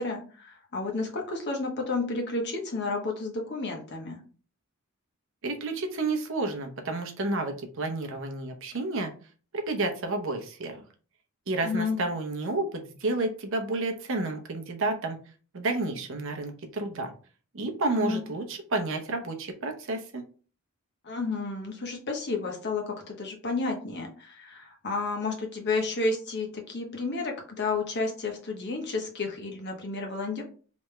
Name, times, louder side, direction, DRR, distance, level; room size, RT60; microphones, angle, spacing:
voice 1, 0.0-4.2 11.6-12.0 17.9-18.2 21.0-30.4, left 3 dB, 55° left, 1 dB, 1.1 m, -31 dB
voice 2, 5.4-9.1 9.5-10.8 11.5-15.2 15.5-17.1 17.5-20.2, right 2 dB, 65° right, 4 dB, 0.8 m, -30 dB
3.4 x 3.0 x 3.3 m, 0.40 s
head